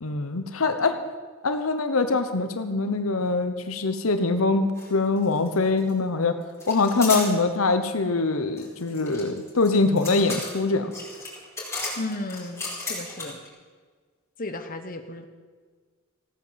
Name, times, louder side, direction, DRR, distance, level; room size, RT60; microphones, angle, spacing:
voice 1, 0.0-1.0 1.4-6.4 6.7-10.9, left 3 dB, 80° left, 8 dB, 1.0 m, -23 dB
sound 1, 4.8-4.9 5.2-5.9 6.6-7.3 8.6-13.5, left 3 dB, 15° left, 4.7 m, -34 dB
voice 2, 12.0-13.4 14.4-15.2, left 2 dB, 45° left, 7 dB, 1.2 m, -34 dB
16.0 x 9.4 x 7.5 m, 1.5 s
head